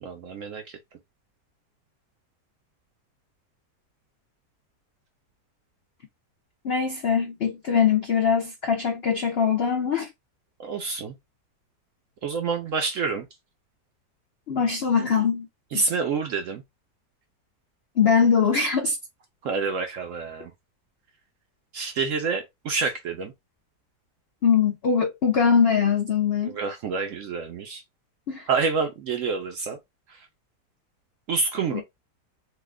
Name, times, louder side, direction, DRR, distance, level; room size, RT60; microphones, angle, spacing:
voice 1, 0.0-0.6 10.6-11.1 12.2-13.2 15.7-16.6 19.4-20.5 21.7-23.3 26.4-27.8 28.5-29.8 31.3-31.8, right 4 dB, 65° right, 0.8 m, -27 dB
voice 2, 6.6-10.1 14.5-15.5 15.7-15.9 18.0-19.0 24.4-26.6 28.3-28.5 31.7-31.8, left 6 dB, 75° left, 0.5 m, -22 dB
3.2 x 2.2 x 3.5 m
omnidirectional pair, 1.8 m